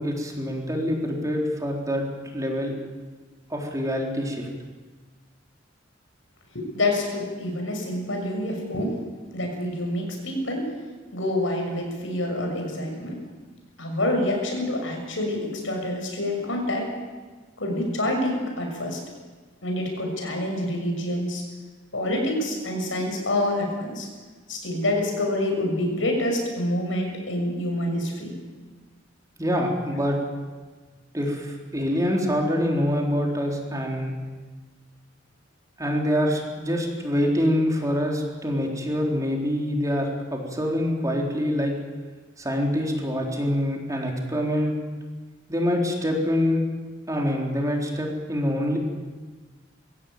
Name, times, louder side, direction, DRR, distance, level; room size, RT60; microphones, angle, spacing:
voice 1, 0.0-2.0 2.3-2.7 3.5-4.5 29.4-30.2 31.1-34.1 35.8-41.7 42.4-44.7 45.5-46.6 47.1-48.8, equal, 20° right, 0 dB, 3.7 m, -25 dB
voice 2, 6.5-8.9 9.3-10.6 11.1-13.2 13.8-16.9 17.6-19.0 19.6-21.4 21.9-24.1 24.5-28.3, left 1 dB, 85° left, 2 dB, 6.4 m, -27 dB
22.5 x 16.0 x 9.1 m, 1.4 s
head